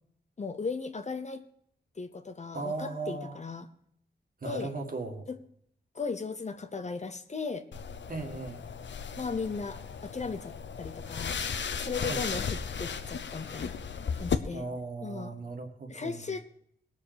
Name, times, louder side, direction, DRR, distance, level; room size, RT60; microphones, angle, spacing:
voice 1, 0.4-1.5 2.0-3.7 4.4-4.7 5.3-5.4 5.9-7.7 9.2-13.8 14.1-14.6 15.0-15.3 15.9-16.5, left 4 dB, 40° left, 9 dB, 0.8 m, -37 dB
voice 2, 2.5-3.4 4.4-5.3 8.1-8.6 12.0-12.3 14.5-16.3, right 3 dB, 50° right, 3 dB, 2.0 m, -37 dB
sound 1, 7.7-14.4, left 6 dB, 80° left, 0.8 m, -35 dB
19.5 x 6.6 x 5.1 m, 0.69 s
wide cardioid pair, 125°, 19 cm